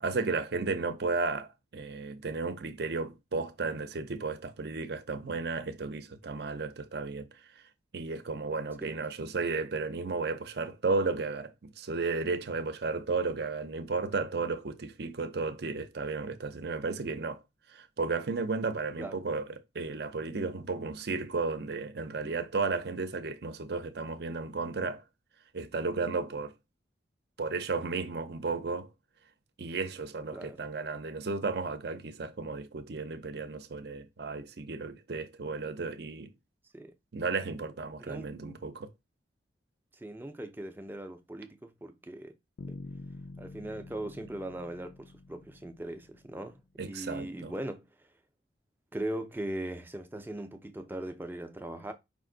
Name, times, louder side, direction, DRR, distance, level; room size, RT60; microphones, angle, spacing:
voice 1, 0.0-7.3 7.9-17.4 17.7-19.4 19.7-25.0 25.5-26.5 27.4-28.9 29.6-36.3 37.1-38.9 46.8-47.5, right 4 dB, 55° right, 0.6 m, -33 dB
voice 2, 40.0-42.3 42.7-42.8 43.4-47.9 48.9-51.9, right 1 dB, 10° right, 0.4 m, -39 dB
Bass guitar, 42.6-46.6, left 2 dB, 80° left, 0.6 m, -47 dB
5.0 x 2.5 x 3.8 m
head